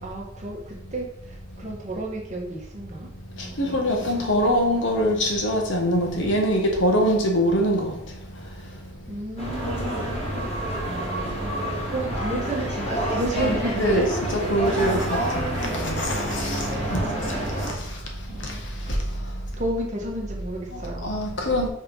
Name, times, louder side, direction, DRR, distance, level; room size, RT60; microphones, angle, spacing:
voice 1, 0.0-3.1 3.3-4.3 9.1-10.2 10.8-14.0 16.1-17.5 18.3-19.0 19.6-21.1, right 1 dB, 40° right, 1.4 m, -32 dB
voice 2, 3.4-8.4 13.4-17.3 17.6-18.0 18.4-19.4 20.7-21.7, equal, 75° left, 1.4 m, -24 dB
sound 1, 9.4-17.7, right 1 dB, 35° left, 2.0 m, -28 dB
5.5 x 3.7 x 5.5 m
head